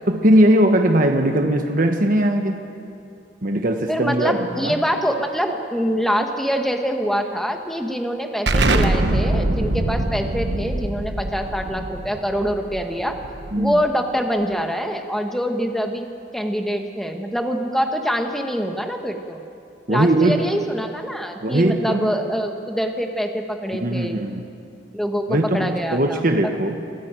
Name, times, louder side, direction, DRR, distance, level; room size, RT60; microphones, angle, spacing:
voice 1, 0.1-2.6 3.4-4.8 13.5-13.8 19.9-20.4 21.4-22.1 23.7-24.4 25.3-26.8, right 1 dB, 50° right, 4 dB, 1.4 m, -19 dB
voice 2, 3.9-13.2 13.6-19.4 19.9-24.2 24.9-26.3, equal, ahead, 4 dB, 1.5 m, -25 dB
Explosion, 8.5-13.8, right 2 dB, 75° right, 1.2 m, -23 dB
24.0 x 14.0 x 9.0 m, 2.5 s
head